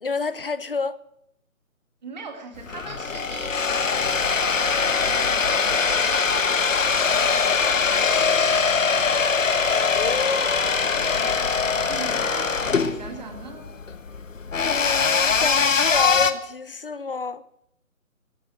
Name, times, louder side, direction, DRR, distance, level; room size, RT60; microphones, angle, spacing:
voice 1, 0.0-1.0 9.9-11.1 14.6-17.4, left 4 dB, 40° left, 0.6 m, -29 dB
voice 2, 2.0-5.6 10.0-10.2 10.8-11.5 11.9-13.7, right 4 dB, 30° right, 2.0 m, -41 dB
sound 1, 2.6-16.3, left 5 dB, 65° left, 1.3 m, -22 dB
13.0 x 12.0 x 7.8 m
figure-of-eight pair, 160°, 42 cm